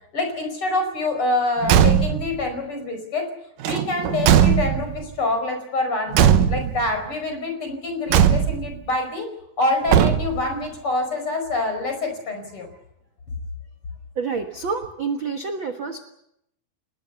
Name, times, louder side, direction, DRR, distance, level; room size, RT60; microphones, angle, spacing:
voice 1, 0.1-3.3 3.6-9.3 9.6-12.7, left 2 dB, 35° left, 6 dB, 5.6 m, -26 dB
Car / Truck / Slam, 1.6-2.4 3.6-5.0 6.1-6.9 8.1-8.8 9.9-10.5, right 9 dB, 70° right, 2.5 m, -18 dB
voice 2, 14.1-16.0, right 5 dB, 50° right, 6 dB, 1.5 m, -28 dB
28.0 x 20.5 x 7.0 m, 0.79 s
omnidirectional pair, 4.3 m